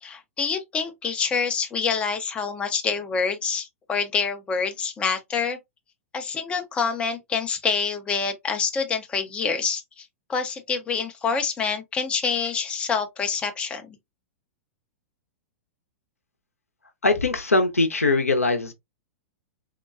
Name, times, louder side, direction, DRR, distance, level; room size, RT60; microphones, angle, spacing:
voice 1, 0.0-5.6 6.1-14.0, left 5 dB, 15° left, 0.5 m, -27 dB
voice 2, 17.0-18.7, left 3 dB, 80° left, 0.6 m, -21 dB
3.6 x 2.2 x 2.3 m
figure-of-eight pair, 100°, 8 cm